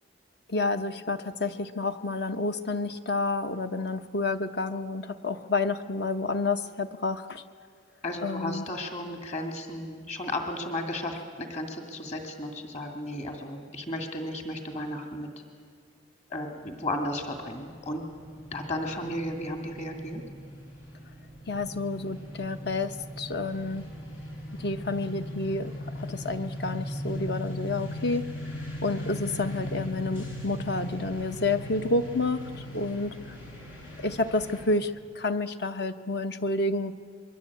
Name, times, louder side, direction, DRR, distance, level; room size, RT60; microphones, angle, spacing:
voice 1, 0.5-7.4 8.2-8.6 21.5-23.9 24.6-28.3 28.8-33.4 34.0-36.9, left 3 dB, 55° left, 9 dB, 1.0 m, -29 dB
voice 2, 8.0-15.3 16.3-18.0 18.5-20.2, left 1 dB, 35° left, 4 dB, 2.4 m, -34 dB
sound 1, 16.5-34.6, left 1 dB, 85° left, 7.1 m, -39 dB
27.0 x 22.0 x 8.4 m, 2.1 s
head